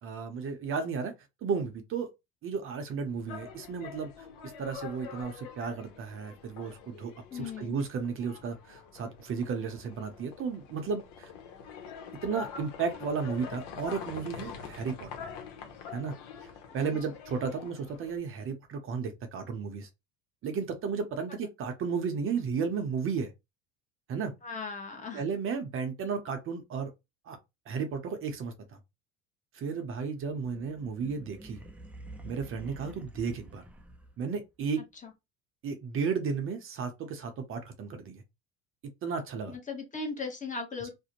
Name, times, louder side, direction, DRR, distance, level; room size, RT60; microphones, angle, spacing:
voice 1, 0.0-1.1 1.4-2.1 2.4-4.3 4.6-11.3 12.2-15.1 15.9-16.1 16.4-19.9 20.4-23.3 24.1-24.3 25.1-26.9 27.3-27.4 27.7-28.8 29.5-31.6 32.2-33.6 34.2-34.8 35.6-38.2 39.0-39.6, right 5 dB, 40° right, 0.6 m, -34 dB
sound 1, 3.1-18.2, left 7 dB, 85° left, 0.8 m, -45 dB
voice 2, 7.3-7.8 16.8-17.0 21.4-21.5 24.4-25.2 35.0-35.1 39.5-40.9, left 4 dB, 25° left, 0.8 m, -38 dB
sound 2, 30.2-34.4, right 1 dB, 5° right, 0.4 m, -49 dB
2.5 x 2.0 x 2.8 m
cardioid pair, 115°, 32 cm